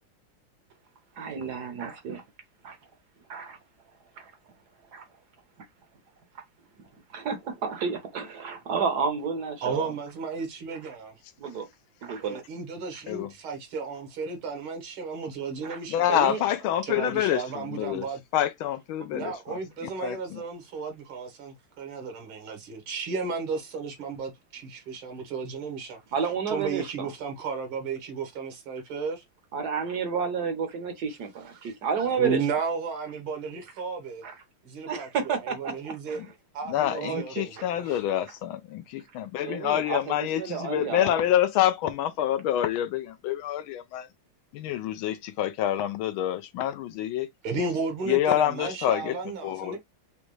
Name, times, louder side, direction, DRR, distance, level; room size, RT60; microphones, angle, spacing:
voice 1, 1.2-2.2 2.6-2.8 3.3-3.6 4.9-5.0 7.1-9.9 11.4-11.7 12.0-12.4 15.6-15.8 16.1-16.4 26.1-26.9 29.5-32.4 34.2-34.3 34.9-36.2 36.9-37.6 39.4-41.2, right 6 dB, 60° right, 1.2 m, -31 dB
voice 2, 9.6-11.2 12.2-16.1 16.8-18.2 19.1-26.0 26.2-29.2 31.5-34.3 34.6-36.2 36.5-38.1 47.4-49.8, right 4 dB, 75° right, 1.9 m, -34 dB
voice 3, 15.9-18.0 18.3-19.3 20.0-20.4 36.7-44.1 44.5-47.3 48.1-49.1 49.4-49.8, left 11 dB, 80° left, 1.3 m, -27 dB
5.2 x 2.3 x 3.1 m
omnidirectional pair, 2.3 m